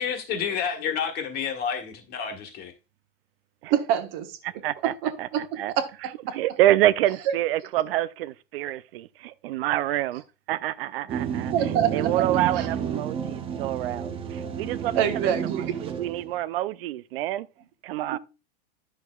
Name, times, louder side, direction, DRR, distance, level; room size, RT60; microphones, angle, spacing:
voice 1, 0.0-2.7, left 7 dB, 35° left, 1.4 m, -29 dB
voice 2, 3.7-4.4 5.0-5.1 7.3-7.4 11.5-12.2 12.6-12.7 15.0-15.7 18.1-18.2, right 10 dB, 45° right, 1.1 m, -25 dB
voice 3, 4.4-4.9 5.2-5.7 6.3-10.2 10.5-17.5 17.8-18.2, right 14 dB, 75° right, 0.5 m, -27 dB
sound 1, 11.1-16.4, right 8 dB, 20° right, 0.6 m, -31 dB
10.0 x 6.5 x 2.3 m
supercardioid pair, 150°, 29 cm